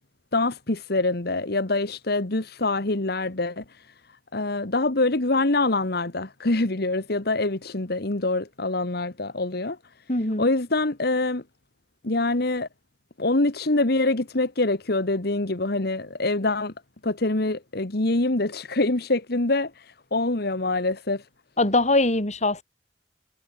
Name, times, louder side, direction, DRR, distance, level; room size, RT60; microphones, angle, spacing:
voice 1, 0.3-3.9 4.3-9.8 10.4-11.4 12.0-12.7 13.2-16.7 17.0-21.3, left 2 dB, 60° left, 1.7 m, -25 dB
voice 2, 10.1-10.5 21.6-22.6, left 2 dB, 40° left, 4.3 m, -22 dB
head